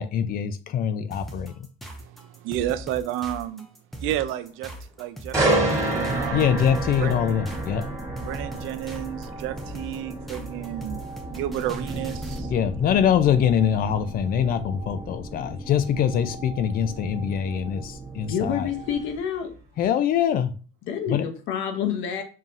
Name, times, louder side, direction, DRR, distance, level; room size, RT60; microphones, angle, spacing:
voice 1, 0.0-1.5 6.3-7.8 12.5-18.7 19.8-20.5 21.1-21.2, left 8 dB, 45° left, 0.4 m, -23 dB
sound 1, 1.1-12.5, right 1 dB, ahead, 0.6 m, -40 dB
voice 2, 2.0-3.7 4.0-6.6 7.0-7.2 8.2-11.0 11.3-12.5, right 12 dB, 75° right, 0.4 m, -31 dB
sound 2, 5.3-19.2 19.6-19.9, right 2 dB, 15° right, 1.6 m, -31 dB
sound 3, 5.9-19.2, right 2 dB, 30° right, 1.3 m, -38 dB
voice 3, 18.3-19.5 20.9-22.2, left 8 dB, 70° left, 0.8 m, -28 dB
5.4 x 2.8 x 2.5 m
cardioid pair, 155°, 21 cm